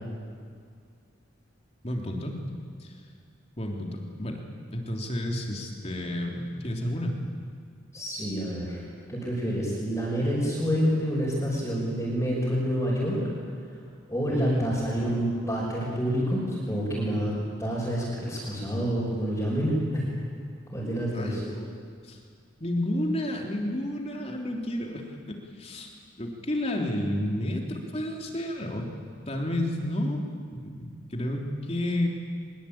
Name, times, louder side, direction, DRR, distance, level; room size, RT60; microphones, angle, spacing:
voice 1, 1.8-2.4 2.8-3.0 3.6-4.4 4.7-7.2 14.3-14.7 21.1-21.7 22.0-22.2 22.6-25.9 26.2-28.9 29.3-30.2 30.5-32.1, left 1 dB, 30° left, 1 dB, 3.4 m, -31 dB
voice 2, 7.9-8.8 9.1-13.2 14.1-17.3 17.6-20.1 20.7-21.4, equal, 15° left, -7 dB, 5.9 m, -28 dB
23.5 x 22.5 x 8.9 m, 2.1 s
head